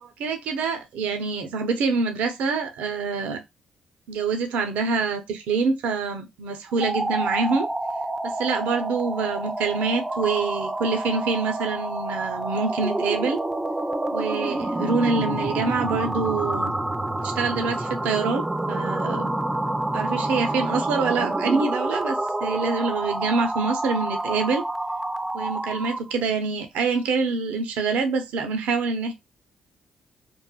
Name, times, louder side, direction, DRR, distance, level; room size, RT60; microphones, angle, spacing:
voice 1, 0.0-3.4 4.1-7.7 8.2-13.4 14.1-16.7 17.2-19.4 19.9-24.6 25.3-29.1, right 4 dB, 85° right, 0.5 m, -26 dB
sound 1, 6.7-26.1, right 2 dB, 15° right, 0.3 m, -28 dB
3.1 x 2.1 x 2.3 m
cardioid pair, 70°, 2 cm